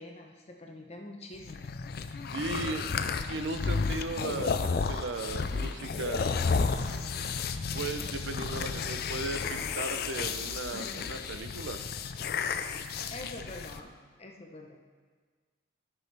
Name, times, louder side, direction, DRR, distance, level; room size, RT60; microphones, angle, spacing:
voice 1, 0.0-1.7 2.3-3.0 13.1-13.9 14.2-14.8, left 1 dB, 30° left, 1 dB, 0.8 m, -45 dB
sound 1, 1.4-13.8, left 5 dB, 50° left, 0.4 m, -32 dB
voice 2, 2.3-2.8 3.3-6.3 7.7-11.8, right 3 dB, 65° right, 8 dB, 0.6 m, -36 dB
sound 2, 5.1-11.9, right 1 dB, 50° right, 1.3 m, -48 dB
13.0 x 6.2 x 3.4 m, 1.5 s
head